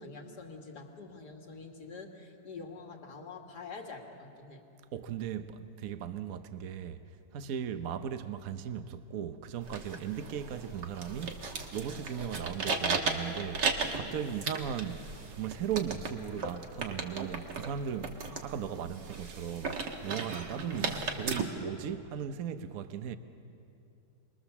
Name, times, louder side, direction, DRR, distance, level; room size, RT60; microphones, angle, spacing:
voice 1, 0.0-4.6, left 4 dB, 75° left, 2.9 m, -46 dB
voice 2, 4.9-7.0 7.3-11.4 11.7-13.7 13.9-23.2, right 8 dB, 60° right, 1.2 m, -37 dB
sound 1, 9.6-21.4, right 4 dB, 85° right, 2.4 m, -36 dB
28.0 x 22.0 x 7.2 m
omnidirectional pair, 1.8 m